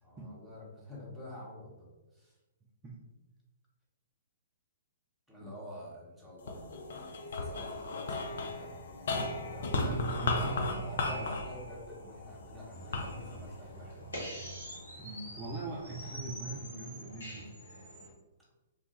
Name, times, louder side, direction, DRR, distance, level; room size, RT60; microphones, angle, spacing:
voice 1, 0.0-1.9 2.1-2.4 5.3-9.8 10.3-14.1, left 1 dB, 5° right, -6 dB, 0.9 m, -48 dB
sound 1, 6.4-14.9 15.4-16.2, left 2 dB, 55° left, 0.4 m, -36 dB
voice 2, 9.7-11.3 15.0-17.5, right 3 dB, 20° right, -5 dB, 0.4 m, -41 dB
sound 2, 12.7-18.1, equal, 75° left, 1.2 m, -45 dB
3.0 x 2.2 x 2.9 m, 1.1 s
figure-of-eight pair, 120°, 0 cm